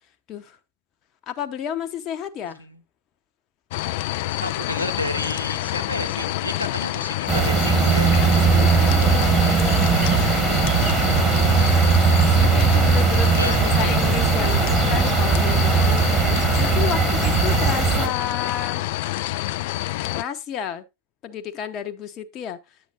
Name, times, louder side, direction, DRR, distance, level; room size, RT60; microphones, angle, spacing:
voice 1, 1.3-2.6 8.8-10.1 12.2-16.1 16.6-18.8 20.0-20.8 21.2-22.6, left 8 dB, 35° left, 0.9 m, -31 dB
voice 2, 2.4-2.8 4.3-8.3 13.4-13.9, left 1 dB, 90° left, 1.0 m, -31 dB
sound 1, 3.7-20.2, left 16 dB, 50° left, 0.3 m, -27 dB
sound 2, 7.3-18.1, right 5 dB, 20° right, 1.5 m, -19 dB
9.8 x 8.0 x 2.5 m
figure-of-eight pair, 90°, 0 cm